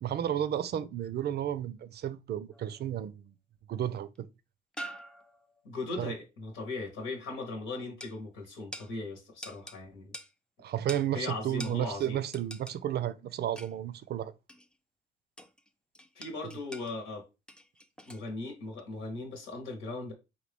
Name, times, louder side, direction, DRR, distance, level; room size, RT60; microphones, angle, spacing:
voice 1, 0.0-3.3 3.7-4.3 6.0-6.1 10.6-14.3, right 11 dB, 55° right, 0.4 m, -32 dB
sound 1, 2.5-3.0 4.1-4.2 4.7-5.6 8.0-8.2 8.7-8.9 9.4-9.8 10.1-10.3 10.9-11.1 11.6-11.8 12.3-12.8 13.6-13.8 14.5-14.7 15.4-15.7 15.9-16.9 17.5-18.3 18.7-18.8, equal, 5° left, 0.4 m, -45 dB
voice 2, 5.6-10.1 11.1-12.2 16.1-17.2 18.1-20.1, left 3 dB, 90° left, 1.3 m, -38 dB
4.0 x 2.7 x 3.4 m
cardioid pair, 90°, 20 cm